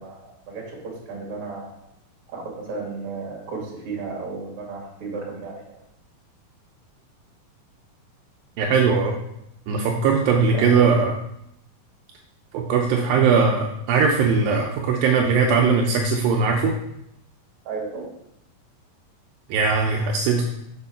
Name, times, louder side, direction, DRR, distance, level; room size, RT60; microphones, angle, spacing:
voice 1, 0.0-1.7 2.3-5.8 10.3-11.0 17.6-18.1, right 4 dB, 45° right, -2 dB, 2.5 m, -34 dB
voice 2, 8.6-9.2 9.7-11.1 12.5-16.8 19.5-20.4, right 5 dB, 80° right, 1 dB, 2.3 m, -20 dB
6.9 x 4.5 x 5.6 m, 0.79 s
omnidirectional pair, 4.3 m